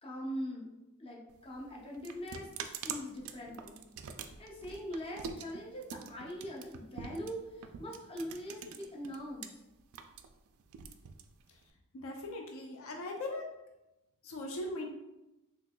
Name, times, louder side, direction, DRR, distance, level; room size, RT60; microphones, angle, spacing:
voice 1, 0.0-0.7 1.0-2.5 2.8-3.8 4.4-9.6, equal, 25° left, -2 dB, 0.6 m, -42 dB
sound 1, 1.3-9.5 9.8-11.7, right 6 dB, 65° right, 0.3 m, -45 dB
voice 2, 11.9-13.4 14.2-14.9, left 2 dB, 65° left, 1 dB, 0.4 m, -39 dB
3.8 x 2.9 x 2.2 m, 0.97 s
head